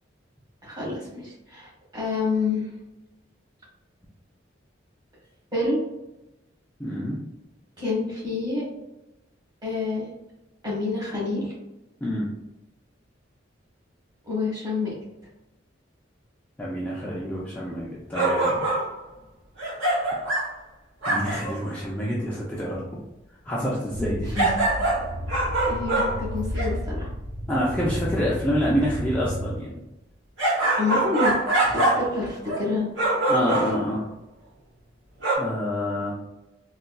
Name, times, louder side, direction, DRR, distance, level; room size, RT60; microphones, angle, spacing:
voice 1, 0.6-2.7 5.5-5.8 7.8-8.6 9.6-10.1 10.6-11.5 14.2-14.9 24.3-24.5 25.7-27.1 30.8-31.3 31.6-32.9 33.5-33.7, left 3 dB, 20° right, -6 dB, 1.2 m, -28 dB
voice 2, 6.8-7.2 12.0-12.3 16.6-18.6 21.0-22.8 23.5-24.4 27.5-29.7 33.3-34.1 35.4-36.1, equal, 10° left, -6 dB, 0.4 m, -27 dB
sound 1, 18.1-18.9 19.6-20.5 21.0-21.6 24.4-26.7 30.4-32.1 32.5-32.7 33.0-33.9 35.2-35.4, right 2 dB, 85° right, 1.0 m, -24 dB
sound 2, 23.9-29.6, equal, 45° right, 0.6 m, -32 dB
4.0 x 2.3 x 2.2 m, 0.93 s
head